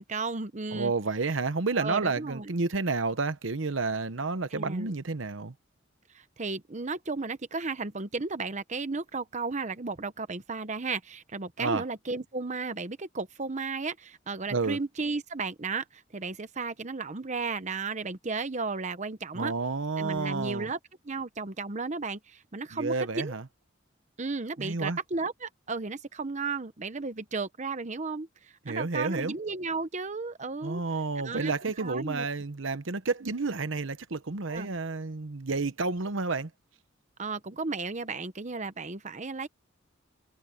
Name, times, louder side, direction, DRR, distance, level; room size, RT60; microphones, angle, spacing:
voice 1, 0.0-0.9 1.3-1.4 1.7-2.5 4.5-4.9 6.1-19.5 20.0-20.8 21.0-23.3 24.2-30.8 31.2-32.3 34.5-34.7 37.2-39.5, right 4 dB, 40° right, 0.9 m, -34 dB
voice 2, 0.7-5.5 11.6-11.8 14.5-14.8 19.3-20.7 22.7-23.4 24.6-25.0 28.6-29.3 30.6-36.5, right 3 dB, 75° right, 1.0 m, -30 dB
head